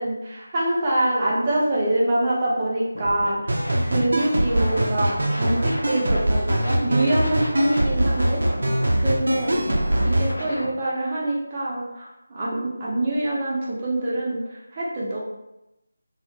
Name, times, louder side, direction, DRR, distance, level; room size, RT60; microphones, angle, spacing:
voice 1, 0.0-3.5 3.8-9.6 10.0-15.2, right 1 dB, 25° right, -6 dB, 0.7 m, -25 dB
Scratching (performance technique), 2.9-3.3 3.6-6.2 6.5-10.7, left 1 dB, 85° left, 0.7 m, -33 dB
sound 1, 3.5-10.3, right 1 dB, 65° right, 0.6 m, -23 dB
2.8 x 2.8 x 2.4 m, 0.92 s
figure-of-eight pair, 160°, 0 cm